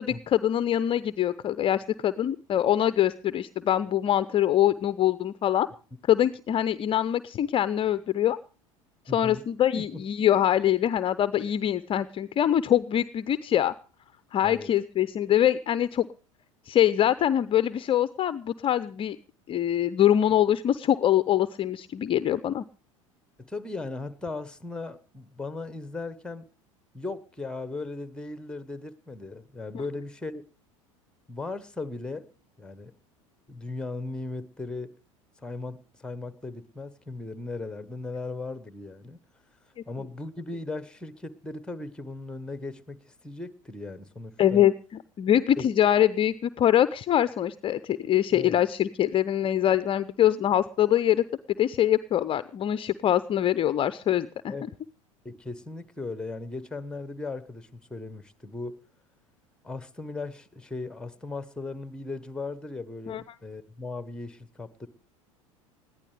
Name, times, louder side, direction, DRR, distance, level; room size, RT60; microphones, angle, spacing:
voice 1, 0.0-5.7 6.1-8.4 9.1-13.7 14.3-16.1 16.7-19.2 19.5-22.6 44.4-44.7 45.2-51.2 51.6-54.3 63.1-63.2, left 11 dB, 30° left, 15 dB, 0.6 m, -24 dB
voice 2, 9.1-9.4 9.8-10.0 14.4-14.7 23.4-26.5 26.9-30.5 31.3-32.3 32.6-32.9 33.5-34.9 35.4-39.2 39.9-44.6 45.6-45.7 48.3-48.6 54.5-54.7 55.2-58.8 59.6-64.9, left 3 dB, 5° left, 13 dB, 1.2 m, -37 dB
20.5 x 15.0 x 3.4 m, 0.36 s
figure-of-eight pair, 75°, 17 cm